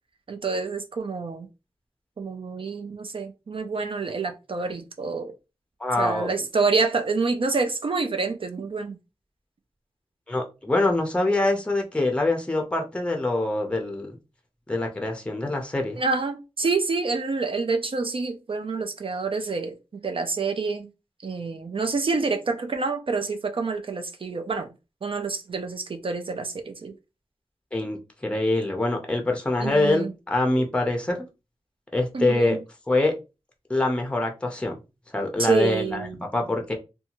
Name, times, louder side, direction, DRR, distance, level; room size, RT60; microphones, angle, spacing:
voice 1, 0.3-1.5 2.2-5.3 6.0-9.0 16.0-20.9 21.2-24.7 25.0-26.9 29.6-30.1 32.1-32.6 35.4-36.2, right 4 dB, 50° right, 0.4 m, -27 dB
voice 2, 5.8-6.3 10.3-14.2 14.7-16.0 27.7-28.0 28.2-31.2 31.9-32.6 32.9-33.1 33.7-34.7 35.1-36.1 36.3-36.7, left 2 dB, 10° left, 0.6 m, -24 dB
2.7 x 2.3 x 2.8 m
wide cardioid pair, 95°, 11 cm